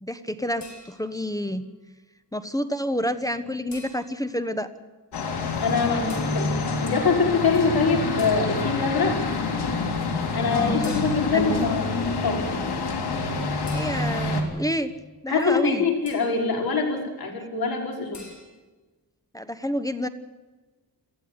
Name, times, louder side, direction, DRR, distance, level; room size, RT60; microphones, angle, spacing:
voice 1, 0.0-1.6 2.3-4.7 10.5-11.0 11.3-11.6 13.7-14.9 15.2-15.8 19.3-20.1, equal, 10° left, 11 dB, 1.1 m, -29 dB
sound 1, 0.6-1.3 3.7-4.3 6.1-6.5 8.2-8.7 10.8-11.5 13.7-14.4 16.1-16.5 18.1-18.4, left 2 dB, 45° left, 5.7 m, -46 dB
sound 2, 5.1-14.4, left 3 dB, 85° left, 3.7 m, -27 dB
voice 2, 5.6-6.5 6.8-9.2 10.3-12.4 15.3-18.1, left 4 dB, 65° left, 1 dB, 5.7 m, -24 dB
19.5 x 14.5 x 9.5 m, 1.2 s
wide cardioid pair, 100°, 39 cm